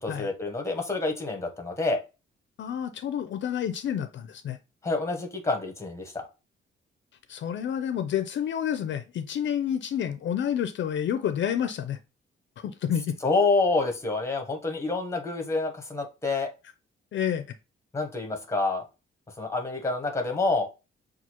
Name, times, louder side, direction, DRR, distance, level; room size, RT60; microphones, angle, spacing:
voice 1, 0.0-2.0 4.8-6.3 13.2-16.5 17.9-18.8 19.4-20.7, left 3 dB, 15° left, 0.8 m, -27 dB
voice 2, 2.6-4.6 7.3-12.0 12.6-13.2 17.1-17.4, left 9 dB, 65° left, 0.4 m, -29 dB
6.0 x 2.4 x 2.8 m
wide cardioid pair, 150°, 21 cm